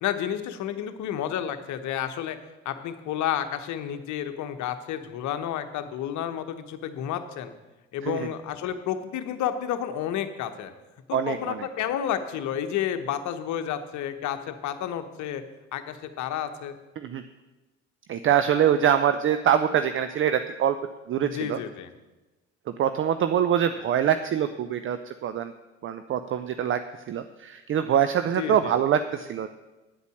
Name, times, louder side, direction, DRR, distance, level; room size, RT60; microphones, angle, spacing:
voice 1, 0.0-2.4 2.6-7.5 7.9-10.7 11.3-15.4 15.7-16.8 21.2-21.9 28.4-28.7, left 10 dB, 50° left, 9 dB, 1.1 m, -31 dB
voice 2, 11.1-11.7 17.0-17.2 18.1-20.8 21.1-21.6 22.7-25.5 25.8-26.8 27.1-29.5, right 9 dB, 35° right, 10 dB, 0.6 m, -24 dB
9.7 x 8.1 x 6.4 m, 1.1 s
figure-of-eight pair, 60°, 37 cm